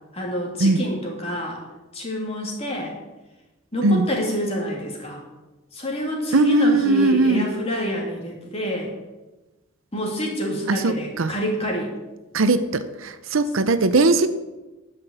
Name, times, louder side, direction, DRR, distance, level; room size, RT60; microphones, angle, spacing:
voice 1, 0.1-1.6 1.9-3.0 3.7-5.2 5.7-8.9 9.9-11.9, equal, 30° left, -1 dB, 2.9 m, -27 dB
voice 2, 6.3-7.5 10.7-11.3 12.3-14.3, right 2 dB, 65° right, 11 dB, 0.7 m, -19 dB
11.5 x 5.9 x 8.2 m, 1.1 s
head